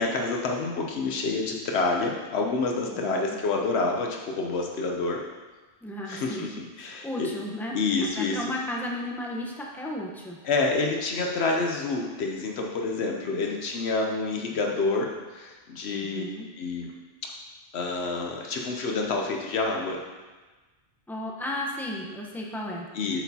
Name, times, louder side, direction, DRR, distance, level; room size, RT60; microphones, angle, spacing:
voice 1, 0.0-5.2 6.0-7.3 7.7-8.4 10.4-16.2 16.6-16.9 17.2-17.3 17.7-20.0 22.9-23.2, left 3 dB, 80° left, 1 dB, 1.0 m, -28 dB
voice 2, 2.9-3.4 5.8-6.5 6.8-10.4 13.2-13.6 15.9-16.5 21.1-23.2, left 1 dB, ahead, -2 dB, 0.8 m, -35 dB
8.1 x 6.3 x 2.8 m, 1.3 s
omnidirectional pair, 1.1 m